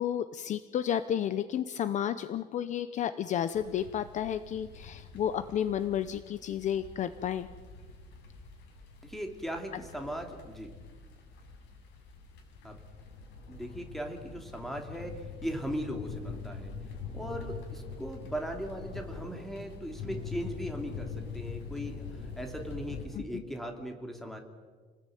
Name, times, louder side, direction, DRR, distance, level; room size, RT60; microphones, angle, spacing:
voice 1, 0.0-7.5 23.1-23.4, left 10 dB, 40° left, 13 dB, 0.8 m, -32 dB
sound 1, 3.5-23.1, left 5 dB, 85° left, 7.0 m, -44 dB
voice 2, 9.0-10.7 12.6-12.8 13.5-16.7 17.1-22.1 22.4-24.4, equal, ahead, 3 dB, 2.8 m, -38 dB
29.5 x 19.5 x 9.2 m, 1.5 s
cardioid pair, 180°, 18 cm